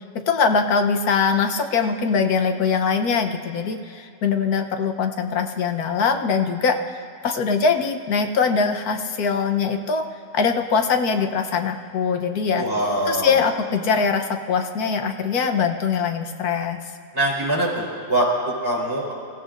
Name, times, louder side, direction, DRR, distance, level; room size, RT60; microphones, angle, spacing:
voice 1, 0.3-10.0 10.3-12.7 13.1-16.8, left 5 dB, 75° left, 6 dB, 1.4 m, -22 dB
voice 2, 12.6-13.4 17.1-19.1, right 1 dB, 15° right, -4 dB, 4.2 m, -23 dB
27.0 x 15.5 x 2.6 m, 2.5 s
omnidirectional pair, 1.6 m